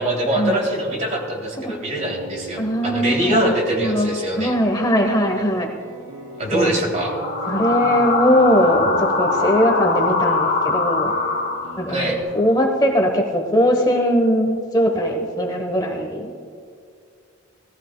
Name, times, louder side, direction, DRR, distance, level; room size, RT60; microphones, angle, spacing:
voice 1, 0.0-4.6 6.4-7.1 11.9-12.2, right 1 dB, 35° right, -1 dB, 2.8 m, -23 dB
sound 1, 1.9-12.2, right 2 dB, 80° right, 2.9 m, -38 dB
voice 2, 2.6-4.1 4.4-5.7 6.5-6.7 7.5-11.1 11.8-16.3, equal, 20° left, 3 dB, 1.0 m, -20 dB
sound 2, 7.0-12.1, left 4 dB, 65° left, 1.6 m, -22 dB
18.0 x 15.0 x 2.2 m, 2.2 s
head